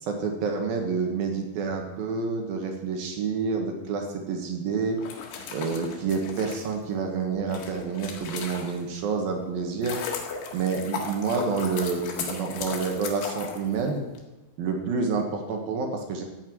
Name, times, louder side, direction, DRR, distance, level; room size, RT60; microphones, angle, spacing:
voice 1, 0.0-5.0 5.5-10.0 10.5-14.0 14.6-16.2, right 5 dB, 65° right, 3 dB, 2.8 m, -28 dB
sound 1, 4.9-9.0 9.5-14.2, left 5 dB, 85° left, 4.2 m, -37 dB
14.0 x 6.6 x 9.1 m, 1.1 s
omnidirectional pair, 5.2 m